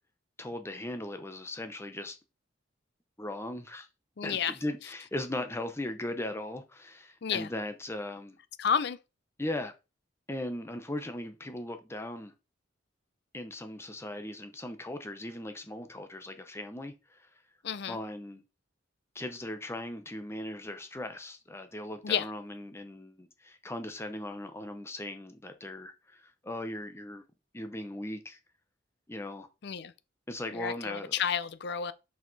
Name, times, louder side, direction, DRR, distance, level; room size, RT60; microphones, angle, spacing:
voice 1, 0.4-2.2 3.2-3.9 4.2-8.4 9.4-9.7 10.3-12.3 13.3-17.3 17.9-18.4 19.1-27.2 27.5-28.4 29.1-29.5 30.3-31.1, left 1 dB, 15° left, 0.7 m, -38 dB
voice 2, 4.2-4.5 7.2-7.5 8.6-9.0 17.6-18.0 22.0-22.3 29.6-29.9 30.5-31.9, left 7 dB, 60° left, 0.5 m, -30 dB
5.7 x 5.0 x 4.0 m
head